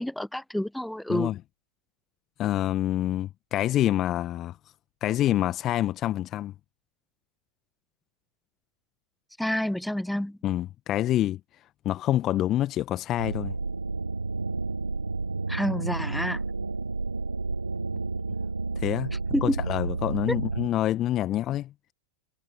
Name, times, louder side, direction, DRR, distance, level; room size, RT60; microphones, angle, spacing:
voice 1, 0.0-1.3 9.4-10.4 15.5-16.4 19.3-19.6 20.3-20.4, left 1 dB, ahead, 0.4 m, -28 dB
voice 2, 2.4-4.6 5.0-6.5 10.4-11.4 11.8-13.5 18.8-19.1 19.4-21.7, left 13 dB, 30° left, 1.3 m, -26 dB
sound 1, 13.2-20.7, right 3 dB, 80° right, 0.6 m, -31 dB
figure-of-eight pair, 90°, 0 cm